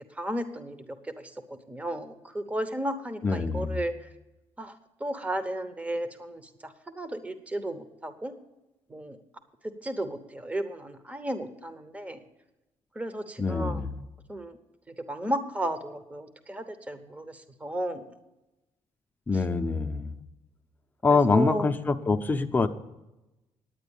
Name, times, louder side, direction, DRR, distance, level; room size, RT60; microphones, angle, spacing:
voice 1, 0.1-4.1 4.6-4.7 5.0-8.3 8.9-9.2 9.6-12.2 12.9-13.9 14.3-14.6 14.9-18.2 19.3-19.4 21.1-21.7, right 1 dB, 10° right, 10 dB, 0.9 m, -34 dB
voice 2, 3.2-3.7 13.4-13.9 19.3-20.1 21.0-22.7, left 4 dB, 15° left, 7 dB, 0.7 m, -25 dB
10.0 x 8.9 x 7.0 m, 0.99 s
cardioid pair, 135°, 11 cm